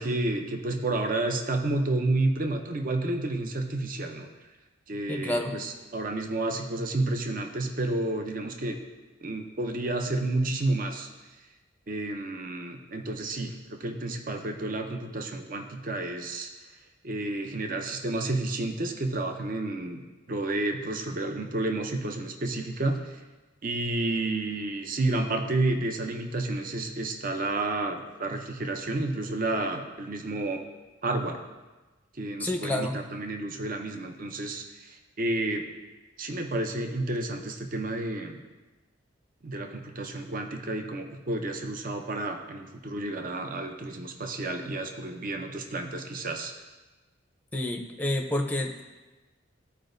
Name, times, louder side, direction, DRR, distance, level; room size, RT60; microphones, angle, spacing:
voice 1, 0.0-4.3 4.9-8.8 9.2-11.1 11.9-16.5 17.0-20.0 20.3-23.1 23.6-30.6 31.0-31.4 32.2-35.6 36.2-38.4 39.4-46.5, right 2 dB, 40° right, 4 dB, 0.6 m, -30 dB
voice 2, 5.1-5.5 32.4-32.9 47.5-48.8, left 1 dB, 10° left, 2 dB, 0.6 m, -29 dB
14.0 x 4.8 x 2.6 m, 1.2 s
head